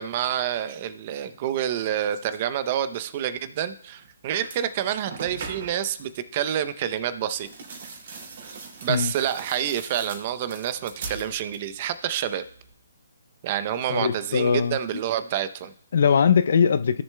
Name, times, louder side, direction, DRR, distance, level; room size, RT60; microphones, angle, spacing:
voice 1, 0.0-7.5 8.8-12.4 13.4-15.7, right 10 dB, 35° right, 0.6 m, -28 dB
sound 1, 4.0-4.1 4.4-5.9 7.2-11.8 12.1-12.7, right 4 dB, 55° right, 2.5 m, -41 dB
voice 2, 13.9-14.8 15.9-17.0, left 6 dB, 60° left, 0.5 m, -20 dB
16.5 x 7.3 x 2.2 m
hypercardioid pair, 150°, 0 cm